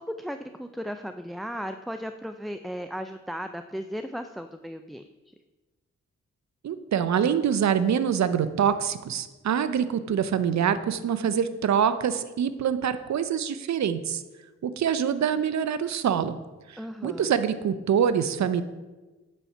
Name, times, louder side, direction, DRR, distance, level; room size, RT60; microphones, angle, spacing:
voice 1, 0.0-5.3 16.8-17.3, equal, ahead, 8 dB, 0.4 m, -36 dB
voice 2, 6.6-14.2 14.6-16.3 16.7-18.6, right 8 dB, 65° right, 12 dB, 0.7 m, -25 dB
9.0 x 4.3 x 5.5 m, 1.2 s
cardioid pair, 50°, 29 cm